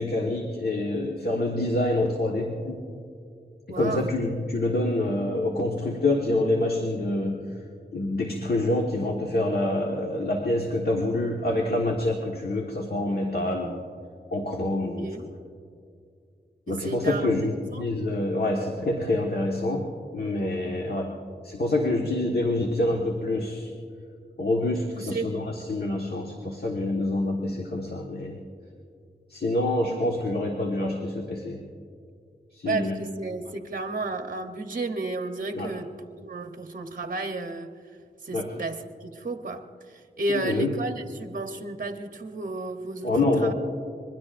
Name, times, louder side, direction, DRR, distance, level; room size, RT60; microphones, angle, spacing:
voice 1, 0.0-2.8 3.8-7.4 7.9-13.8 14.3-15.1 16.7-19.9 20.1-21.1 21.4-23.7 24.4-28.4 29.3-31.6 32.5-33.0 35.6-35.7 38.3-38.5 40.3-40.7 43.0-43.5, left 2 dB, 60° left, 0 dB, 1.5 m, -26 dB
voice 2, 3.7-4.1 15.0-15.3 16.7-17.9 24.9-25.4 32.6-37.8 38.2-43.1 43.4-43.5, right 2 dB, 50° right, 6 dB, 0.9 m, -32 dB
26.0 x 21.5 x 2.6 m, 2.3 s
cardioid pair, 55°, 18 cm